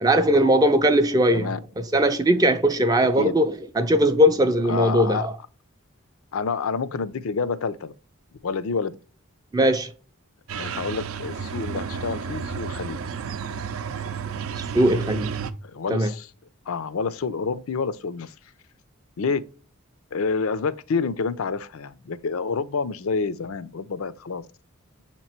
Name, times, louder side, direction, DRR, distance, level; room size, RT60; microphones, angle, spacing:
voice 1, 0.0-1.5 1.8-5.4 9.5-9.9 14.6-15.3 15.9-16.1, equal, 15° right, 0.4 m, -20 dB
voice 2, 4.6-5.3 6.3-7.9 8.4-8.9 10.5-13.0 15.6-16.3 16.7-18.3 19.2-19.4 20.1-24.4, left 5 dB, 75° left, 0.5 m, -28 dB
sound 1, 10.5-15.5, right 6 dB, 75° right, 0.5 m, -32 dB
7.2 x 3.0 x 4.3 m
head